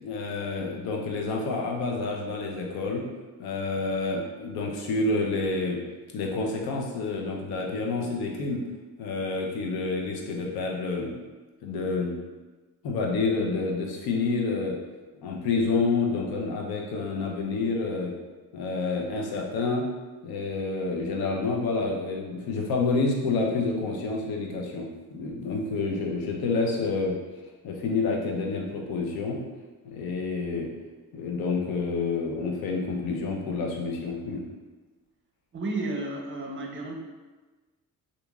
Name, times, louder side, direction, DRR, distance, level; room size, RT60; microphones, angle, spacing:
voice 1, 0.0-3.0 3.4-5.8 6.1-8.6 9.0-11.1 11.6-12.1 12.8-14.8 15.2-18.1 18.5-19.8 20.2-27.1 27.6-29.4 29.8-30.7 31.1-34.4, left 3 dB, 75° left, 0 dB, 0.6 m, -28 dB
voice 2, 35.5-36.9, right 2 dB, 35° right, 1 dB, 0.5 m, -32 dB
2.8 x 2.6 x 2.3 m, 1.3 s
cardioid pair, 90°, 37 cm